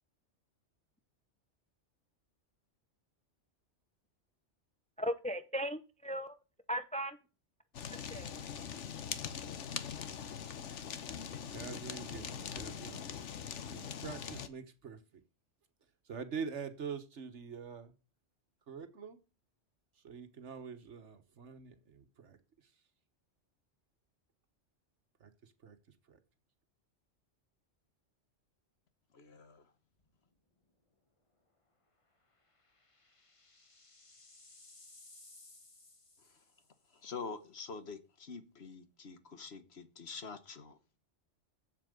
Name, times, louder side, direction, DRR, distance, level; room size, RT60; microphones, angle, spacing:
voice 1, 5.0-6.4 6.7-7.2 7.9-8.3, equal, 10° left, 0.4 m, -37 dB
Fire, 7.7-14.5, left 8 dB, 75° left, 1.3 m, -42 dB
voice 2, 11.3-13.2 13.7-15.0 16.1-17.9 18.7-19.2 20.0-22.7 25.2-25.8 26.1-26.2, right 6 dB, 75° right, 1.6 m, -45 dB
voice 3, 29.1-29.6 37.0-41.0, left 4 dB, 60° left, 1.5 m, -46 dB
sound 1, 30.0-30.3 30.7-30.8 32.2-36.9, left 2 dB, 25° left, 1.3 m, -59 dB
7.6 x 7.5 x 6.5 m
omnidirectional pair, 1.2 m